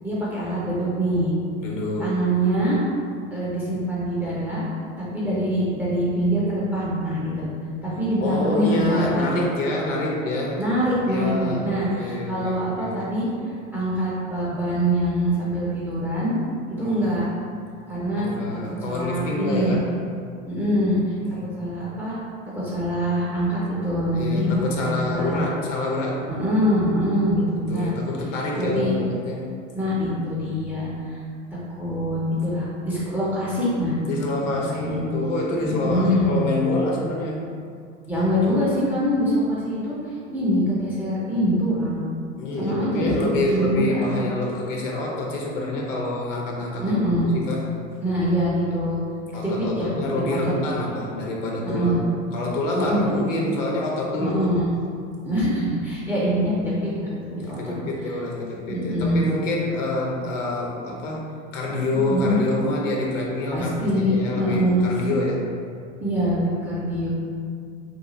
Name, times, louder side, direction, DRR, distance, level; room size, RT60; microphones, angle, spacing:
voice 1, 0.0-1.4 2.0-2.8 3.3-4.6 5.0-7.5 7.8-9.4 10.6-13.3 13.7-16.3 16.7-17.3 17.9-18.3 18.8-19.8 20.5-21.1 21.6-22.2 22.5-25.4 26.4-27.9 28.6-29.0 29.8-31.2 31.5-34.2 34.7-35.0 35.6-36.3 38.1-40.0 40.3-42.0 42.6-44.2 46.8-47.3 48.0-49.0 49.4-49.9 50.4-50.5 51.6-52.0 52.8-53.0 54.2-54.7 55.2-57.7 58.7-59.3 62.1-62.4 63.5-64.9 66.0-67.1, equal, 5° right, -9 dB, 0.4 m, -24 dB
voice 2, 1.6-2.2 8.2-10.6 11.1-13.0 16.8-17.2 18.1-19.9 21.2-21.7 24.1-26.3 27.5-29.5 34.0-37.5 42.4-47.7 49.3-54.5 57.4-61.3 61.5-65.4, left 1 dB, 65° left, -2 dB, 0.7 m, -27 dB
2.9 x 2.3 x 2.7 m, 2.3 s
figure-of-eight pair, 85°, 40 cm